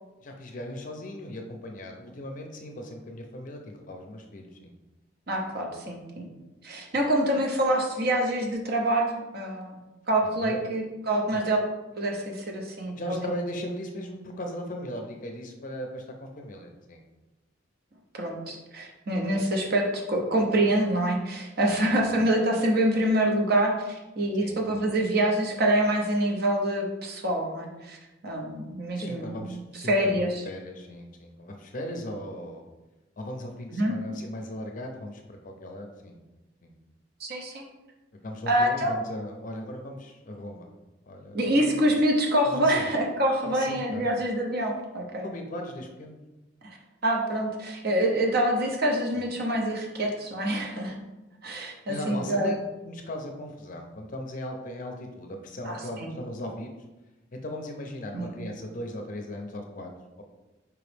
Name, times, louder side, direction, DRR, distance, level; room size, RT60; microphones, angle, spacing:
voice 1, 0.2-4.7 10.2-10.6 11.3-11.4 13.0-17.0 21.7-21.9 24.4-24.6 29.0-32.6 33.2-36.2 36.6-36.7 38.1-40.7 41.0-41.8 42.4-42.9 43.4-44.1 45.2-46.2 49.1-49.4 51.9-52.6 52.8-56.7 57.3-59.9 60.2-60.3, left 1 dB, 40° left, 3 dB, 0.5 m, -38 dB
voice 2, 5.3-6.3 6.6-9.8 10.1-11.6 12.0-13.3 18.1-28.0 28.2-29.6 29.9-30.4 33.7-34.0 37.2-37.7 38.5-38.9 41.3-45.3 46.6-46.8 47.0-50.9 51.4-52.5 55.6-56.1 58.1-58.3, right 1 dB, 55° right, 1 dB, 0.8 m, -26 dB
4.8 x 3.0 x 3.3 m, 1.1 s
head